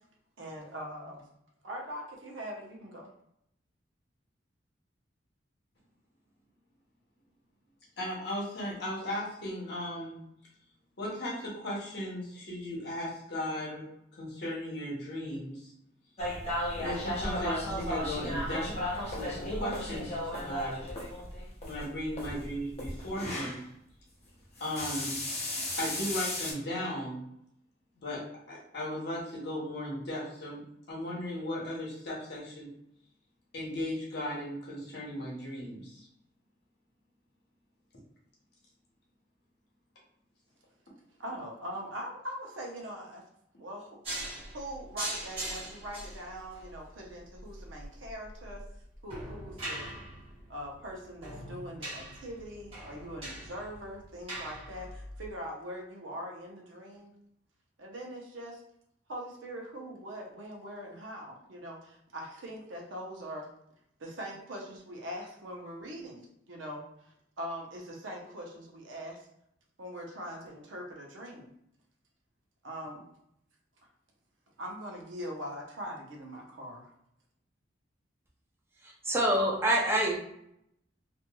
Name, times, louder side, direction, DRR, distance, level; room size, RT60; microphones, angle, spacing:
voice 1, 0.4-1.2 1.6-3.1 41.2-43.2 43.6-43.9 44.5-48.6 49.0-49.9 50.5-57.1 57.8-58.6 59.1-61.8 62.1-63.5 64.0-66.2 66.5-66.8 67.4-69.2 69.8-71.5 72.6-73.0 74.6-76.8, equal, 85° right, 0 dB, 0.7 m, -42 dB
voice 2, 8.0-10.2 11.0-13.9 14.1-15.7 16.8-18.7 19.1-20.8 21.6-23.6 24.6-25.2 25.8-27.2 28.0-30.6 30.9-32.7 33.5-36.1, left 1 dB, 60° left, -4 dB, 1.0 m, -36 dB
sound 1, 16.2-23.6 24.6-26.5, left 1 dB, 35° left, 0.7 m, -35 dB
sound 2, 44.0-55.3, right 1 dB, 30° right, 1.0 m, -42 dB
voice 3, 79.1-80.2, right 1 dB, 15° right, -2 dB, 0.5 m, -25 dB
2.9 x 2.5 x 2.2 m, 0.76 s
head